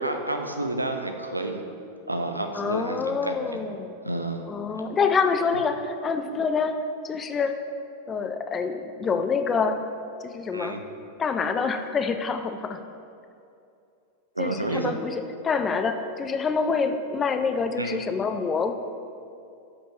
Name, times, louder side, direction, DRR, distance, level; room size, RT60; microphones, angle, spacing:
voice 1, 0.0-1.6 2.1-3.6 4.0-4.5 10.5-10.8 14.4-14.9 17.8-18.0, right 2 dB, 85° right, 5 dB, 0.4 m, -30 dB
voice 2, 2.5-3.9 4.5-6.8 7.0-7.6 8.1-9.8 10.2-10.8 11.2-12.8 14.4-18.7, left 5 dB, 20° left, 8 dB, 0.4 m, -26 dB
7.1 x 5.3 x 3.1 m, 2.5 s
figure-of-eight pair, 90°, 0 cm